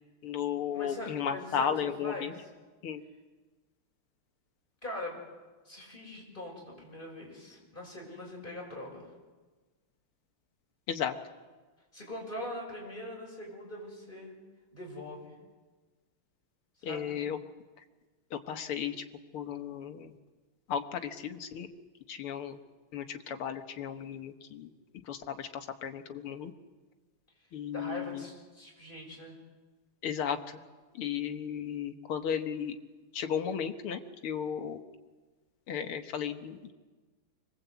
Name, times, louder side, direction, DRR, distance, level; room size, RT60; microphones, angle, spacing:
voice 1, 0.2-2.3 2.8-3.0 10.9-11.1 16.8-17.4 18.3-19.0 19.3-20.2 20.7-21.7 22.1-22.6 22.9-24.7 25.0-26.5 27.5-28.2 30.0-30.6 30.9-32.8 33.1-34.8 35.7-36.7, left 8 dB, 80° left, 7 dB, 2.3 m, -34 dB
voice 2, 0.7-1.7 2.0-2.3 4.8-5.2 5.6-9.1 11.9-14.3 14.7-15.3 16.8-17.2 27.7-29.4, left 1 dB, 20° left, -1 dB, 6.9 m, -42 dB
25.0 x 21.0 x 8.3 m, 1.3 s
omnidirectional pair, 2.4 m